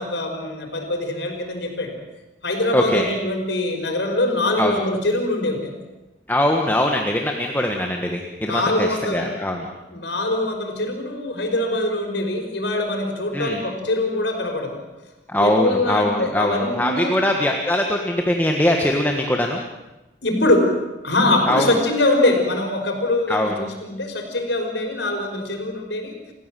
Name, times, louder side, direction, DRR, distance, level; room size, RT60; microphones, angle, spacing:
voice 1, 0.0-1.9 2.4-5.7 8.5-9.3 9.9-14.8 15.4-17.2 20.2-20.8 21.0-26.2, left 2 dB, 90° left, 3 dB, 5.4 m, -23 dB
voice 2, 2.7-3.1 4.6-4.8 6.3-9.7 13.3-13.6 15.3-19.6 21.5-21.7 23.3-23.7, left 1 dB, 10° left, 2 dB, 1.6 m, -22 dB
29.5 x 15.5 x 7.7 m, 1.1 s
head